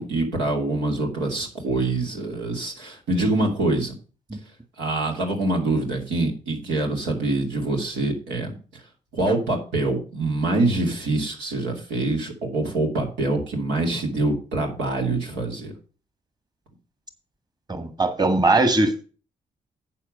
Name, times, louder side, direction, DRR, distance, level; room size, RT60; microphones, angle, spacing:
voice 1, 0.0-3.9 4.8-8.6 9.1-15.7, right 2 dB, 85° right, 0 dB, 2.7 m, -25 dB
voice 2, 17.7-19.0, right 2 dB, 20° right, 9 dB, 1.8 m, -20 dB
8.6 x 7.2 x 5.4 m, 0.37 s
supercardioid pair, 50°, 18 cm